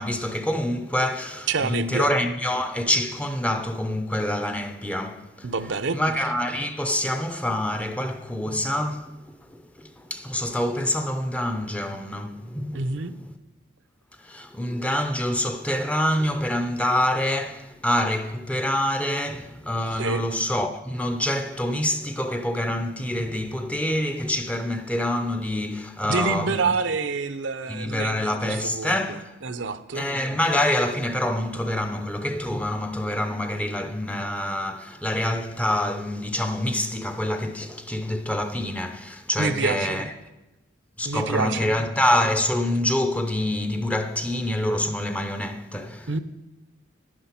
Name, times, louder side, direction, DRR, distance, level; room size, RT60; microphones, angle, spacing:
voice 1, 0.0-5.5 5.9-9.1 9.5-12.9 14.2-26.7 27.7-29.2 29.9-40.1 41.0-46.1, left 1 dB, 5° left, 0.6 m, -26 dB
voice 2, 1.5-2.1 5.4-6.0 12.7-13.2 20.0-20.3 26.0-30.1 39.4-40.0 41.0-41.7 46.1-46.2, right 4 dB, 70° right, 0.6 m, -27 dB
11.0 x 9.6 x 5.8 m
head